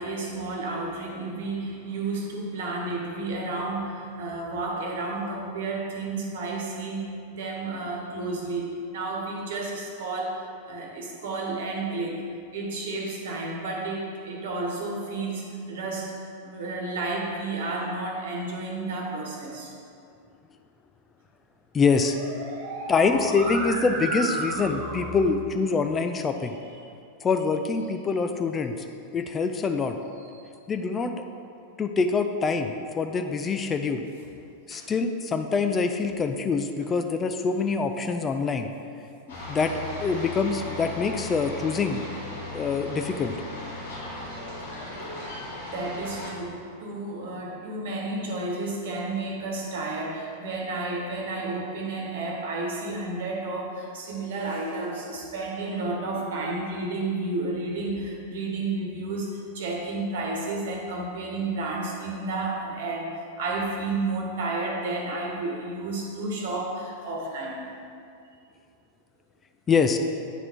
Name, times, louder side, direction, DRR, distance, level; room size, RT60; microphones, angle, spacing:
voice 1, 0.0-12.2 12.5-16.1 16.4-19.7 21.9-25.2 26.4-26.5 30.2-30.3 34.7-34.9 45.2-45.3 45.7-63.1 63.4-67.6, right 2 dB, 55° right, -1 dB, 1.2 m, -31 dB
voice 2, 21.7-22.2 22.9-26.5 27.2-28.7 29.1-30.0 30.7-31.1 31.8-34.0 34.7-38.7 39.5-39.7 40.0-42.0 42.5-43.4 69.7-70.0, left 4 dB, 20° left, 6 dB, 0.3 m, -25 dB
sound 1, 39.3-46.3, left 2 dB, 60° left, 1.6 m, -37 dB
8.8 x 3.9 x 4.5 m, 2.5 s
figure-of-eight pair, 90°, 0 cm